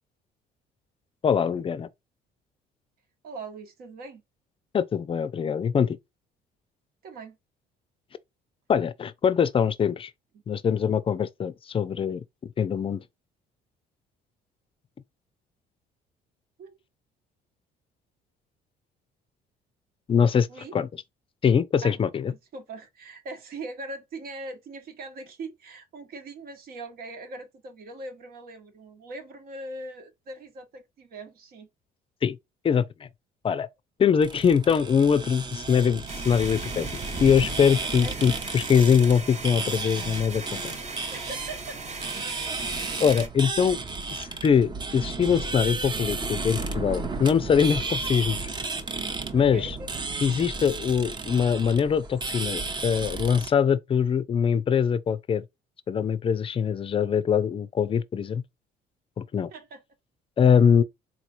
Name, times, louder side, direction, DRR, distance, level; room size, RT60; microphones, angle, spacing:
voice 1, 1.2-1.9 4.7-6.0 8.7-10.1 10.5-12.2 12.6-13.0 20.1-20.5 20.7-20.9 21.4-22.3 32.2-32.4 32.6-33.1 33.4-33.7 34.0-36.9 37.2-40.7 43.0-43.8 44.1-48.5 49.3-49.8 50.2-55.4 55.9-58.4 59.2-59.5 60.4-60.8, left 7 dB, 30° left, 0.5 m, -23 dB
voice 2, 3.2-4.2 7.0-7.4 10.3-10.4 16.6-16.8 20.5-20.7 21.8-22.0 22.3-31.7 38.0-38.2 41.1-41.8 49.4-49.9 59.5-59.8, right 2 dB, 65° right, 1.2 m, -41 dB
sound 1, 34.2-53.5, right 3 dB, 25° right, 0.7 m, -33 dB
sound 2, 36.1-43.3, right 3 dB, 40° right, 1.2 m, -38 dB
4.0 x 2.9 x 2.5 m
cardioid pair, 110°, 17 cm